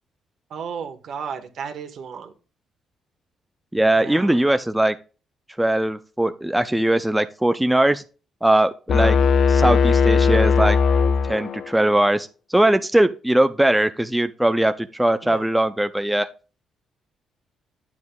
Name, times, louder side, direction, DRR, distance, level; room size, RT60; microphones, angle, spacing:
voice 1, 0.5-2.3 3.9-4.4 15.2-15.5, right 6 dB, 65° right, 6 dB, 1.3 m, -34 dB
voice 2, 3.7-5.0 5.6-8.0 8.4-9.2 9.5-10.8 11.2-16.3, right 1 dB, 5° right, 9 dB, 0.5 m, -20 dB
sound 1, 8.9-11.8, left 5 dB, 60° left, 0.4 m, -18 dB
9.5 x 7.3 x 2.3 m, 0.35 s
cardioid pair, 90°, 0 cm